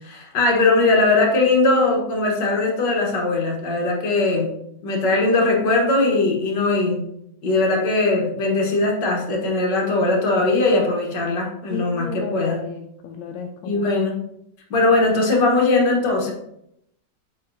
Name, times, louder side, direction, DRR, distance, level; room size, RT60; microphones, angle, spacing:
voice 1, 0.0-4.5 4.8-7.0 7.4-12.6 13.6-14.2 14.7-16.3, left 2 dB, 70° left, -1 dB, 1.9 m, -20 dB
voice 2, 9.9-10.5 11.7-13.9 15.0-15.1, left 6 dB, 90° left, 3 dB, 1.4 m, -33 dB
7.6 x 4.7 x 2.7 m, 0.77 s
omnidirectional pair, 2.0 m